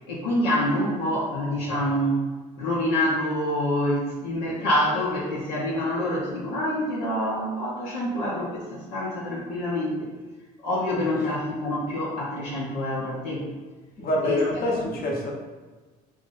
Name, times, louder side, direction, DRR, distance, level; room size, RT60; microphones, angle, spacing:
voice 1, 0.1-2.2 2.6-10.1 10.6-13.5 14.2-14.9, left 1 dB, 80° left, -5 dB, 0.7 m, -26 dB
voice 2, 14.0-15.3, left 1 dB, 50° left, -1 dB, 0.9 m, -26 dB
2.6 x 2.5 x 3.9 m, 1.3 s
hypercardioid pair, 60°, 20 cm